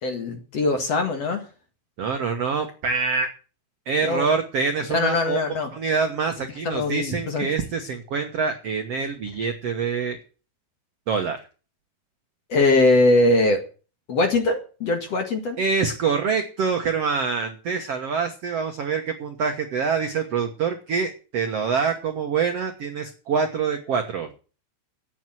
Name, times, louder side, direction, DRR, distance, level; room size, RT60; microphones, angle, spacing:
voice 1, 0.0-1.4 4.0-4.3 4.9-5.7 6.6-7.5 12.5-13.6 14.1-15.6, left 2 dB, 50° left, 4 dB, 2.4 m, -21 dB
voice 2, 2.0-3.3 3.8-5.4 5.7-10.2 11.1-11.4 15.6-24.3, right 5 dB, 70° right, 5 dB, 1.4 m, -25 dB
12.5 x 9.1 x 7.6 m, 0.36 s
omnidirectional pair, 4.9 m